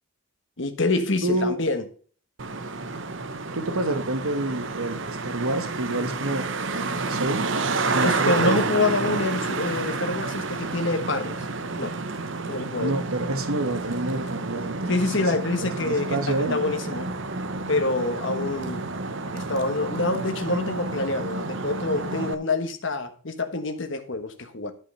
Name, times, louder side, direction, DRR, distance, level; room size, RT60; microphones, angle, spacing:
voice 1, 0.6-1.8 8.0-11.4 11.8-12.0 12.5-12.9 14.9-17.1 17.7-18.9 19.3-24.7, left 2 dB, 55° left, 1.3 m, -26 dB
voice 2, 1.2-1.6 3.5-7.5 7.9-8.5 12.8-15.3 15.6-16.6, right 2 dB, 75° right, 1.4 m, -28 dB
Traffic noise roadway noise, 2.4-22.3, right 3 dB, 55° right, 0.8 m, -30 dB
11.0 x 5.6 x 5.5 m
head